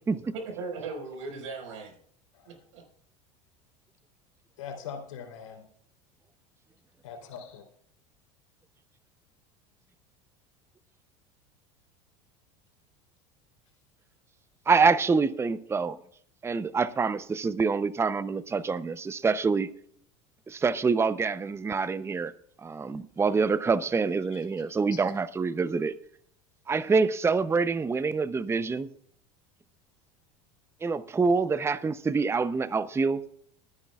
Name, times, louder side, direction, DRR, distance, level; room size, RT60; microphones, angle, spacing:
voice 1, 0.1-2.0 2.4-2.8, right 4 dB, 80° right, 4.9 m, -38 dB
voice 2, 4.6-5.7 7.0-7.6 24.3-24.4 24.7-25.0, left 7 dB, 90° left, 3.4 m, -42 dB
voice 3, 14.7-16.0 16.4-19.7 20.5-22.3 22.6-25.9 26.7-28.9 30.8-33.2, right 4 dB, 15° right, 0.6 m, -26 dB
24.5 x 10.0 x 2.4 m
hypercardioid pair, 95°, 16 cm